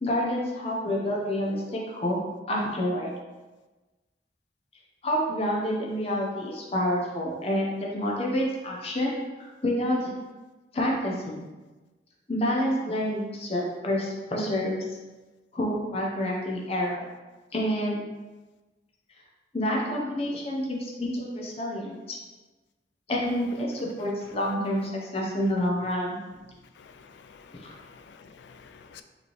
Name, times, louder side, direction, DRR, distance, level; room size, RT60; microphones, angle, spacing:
voice 1, 0.0-2.2 2.5-3.1 5.0-10.1 10.7-11.4 12.3-14.8 15.5-17.1 17.5-18.0 19.5-22.2 23.1-26.2 27.5-27.7, equal, 35° left, -2 dB, 0.7 m, -28 dB
voice 2, 26.8-29.0, left 6 dB, 80° left, 8 dB, 0.4 m, -50 dB
5.0 x 3.3 x 3.1 m, 1.2 s
head